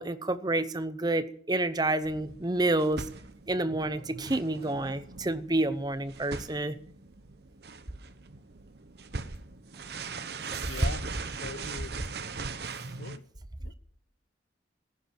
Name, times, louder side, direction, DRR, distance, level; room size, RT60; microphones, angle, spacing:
voice 1, 0.0-3.0 3.5-6.8 10.5-10.9, right 2 dB, 20° right, 0.8 m, -29 dB
sound 1, 2.0-13.2, right 4 dB, 60° right, 0.9 m, -41 dB
voice 2, 10.7-11.1 11.4-12.0 13.0-13.2 13.6-13.7, left 3 dB, 85° left, 1.0 m, -40 dB
14.5 x 11.0 x 7.7 m
head